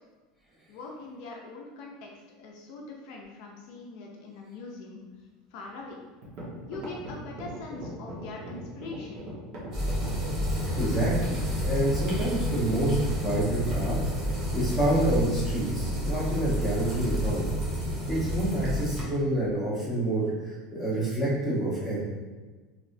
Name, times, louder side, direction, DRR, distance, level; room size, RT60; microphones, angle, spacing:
voice 1, 0.7-2.1 2.4-5.0 5.5-6.0 6.7-9.3, left 3 dB, 60° left, -1 dB, 0.5 m, -42 dB
sound 1, 5.8-5.9 6.2-10.9, right 1 dB, 50° right, 1.1 m, -40 dB
sound 2, 9.7-19.0, equal, 30° right, 1.0 m, -30 dB
voice 2, 10.5-14.0 14.2-17.4 18.1-22.0, right 1 dB, 10° right, -10 dB, 1.3 m, -28 dB
3.1 x 2.8 x 2.6 m, 1.3 s
supercardioid pair, 150°, 0 cm